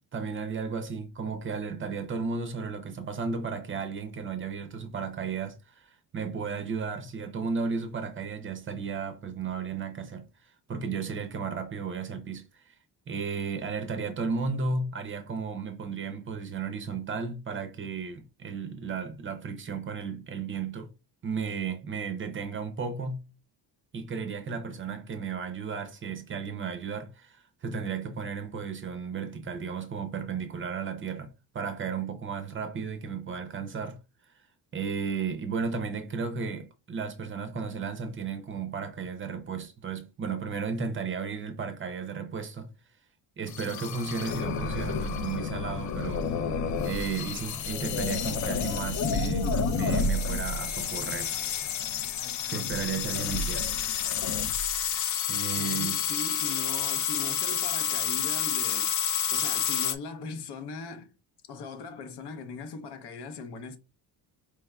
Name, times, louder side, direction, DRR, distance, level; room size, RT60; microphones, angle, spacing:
voice 1, 0.0-10.3 10.7-12.7 13.1-20.9 21.2-23.2 23.9-34.0 34.7-42.7 43.4-46.2 46.8-51.5 52.5-53.7 55.3-56.0, right 5 dB, 30° right, 0.5 m, -34 dB
sound 1, 43.5-59.9, left 7 dB, 45° left, 0.4 m, -29 dB
voice 2, 55.6-61.1 61.5-63.8, left 4 dB, 75° left, 0.8 m, -39 dB
4.6 x 3.4 x 2.2 m
cardioid pair, 165°, 41 cm